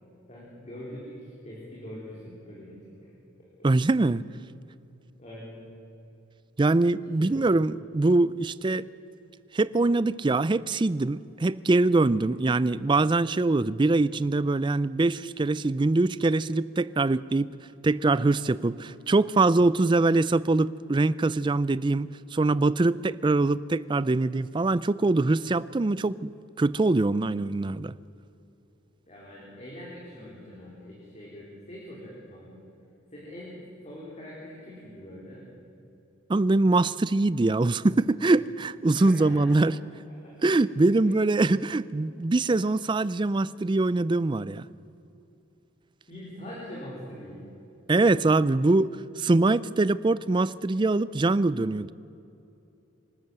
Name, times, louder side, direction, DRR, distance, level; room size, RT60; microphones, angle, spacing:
voice 1, 0.3-3.1 5.2-5.6 7.1-7.5 18.1-18.2 29.1-32.6 33.1-35.5 38.9-39.6 40.1-40.3 41.0-41.1 46.1-47.4, equal, 35° left, 4.0 m, -43 dB
voice 2, 3.6-4.2 6.6-8.9 9.5-17.5 17.8-26.3 26.6-27.9 36.3-39.7 40.4-44.7 47.9-51.9, right 2 dB, 25° right, 0.4 m, -23 dB
25.0 x 13.0 x 7.9 m
head